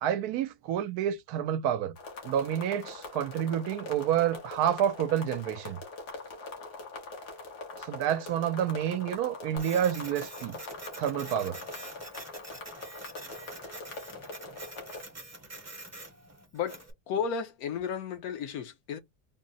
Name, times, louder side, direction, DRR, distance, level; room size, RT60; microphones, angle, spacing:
voice 1, 0.0-2.0 2.2-5.8 7.8-10.6 11.0-11.6, right 10 dB, 75° right, 1.0 m, -29 dB
sound 1, 2.0-15.0, left 3 dB, 90° left, 1.8 m, -43 dB
Printer, 9.6-16.9, right 2 dB, 15° right, 0.7 m, -46 dB
voice 2, 16.5-19.0, left 7 dB, 70° left, 1.2 m, -33 dB
3.7 x 2.1 x 3.9 m
omnidirectional pair, 1.7 m